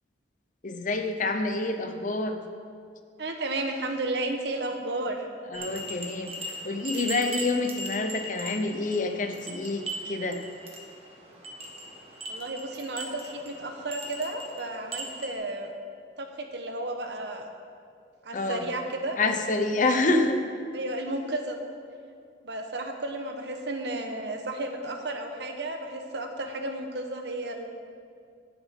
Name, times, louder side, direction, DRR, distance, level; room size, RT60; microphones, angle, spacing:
voice 1, 0.6-2.4 5.5-6.3 6.6-10.4 18.3-18.7 19.2-20.4, left 3 dB, 45° left, 6 dB, 0.7 m, -27 dB
voice 2, 3.2-5.3 12.3-15.7 16.2-17.5 18.2-19.2 19.8-20.1 20.7-21.6 22.4-27.7, right 2 dB, 65° right, 4 dB, 1.1 m, -33 dB
sound 1, 5.5-15.3, right 1 dB, 35° right, 1.5 m, -39 dB
19.0 x 7.1 x 3.7 m, 2.3 s
head